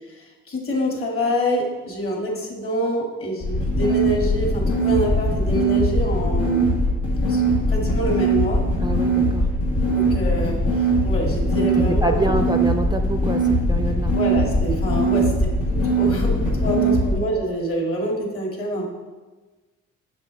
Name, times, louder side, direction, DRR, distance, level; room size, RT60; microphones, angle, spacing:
voice 1, 0.1-6.6 7.3-7.4 7.7-8.7 9.8-12.3 14.1-18.9, equal, 45° left, 0 dB, 2.0 m, -26 dB
sound 1, 3.4-17.1, right 1 dB, 85° left, 2.0 m, -21 dB
voice 2, 8.8-9.5 11.5-14.2 16.7-17.0, right 2 dB, 15° right, 6 dB, 0.4 m, -26 dB
7.3 x 6.8 x 3.2 m, 1.3 s
cardioid pair, 90°, 30 cm